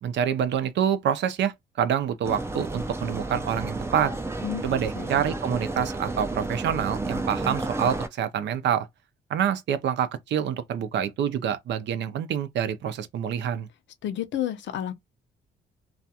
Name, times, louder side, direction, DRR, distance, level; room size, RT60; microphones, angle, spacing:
voice 1, 0.0-4.1 4.6-8.9 9.3-13.7, right 9 dB, 65° right, 0.5 m, -27 dB
sound 1, 2.2-8.1, right 2 dB, 15° right, 0.4 m, -32 dB
voice 2, 4.4-5.1 14.0-14.9, left 11 dB, 65° left, 0.6 m, -31 dB
2.4 x 2.3 x 2.7 m
cardioid pair, 90°, 20 cm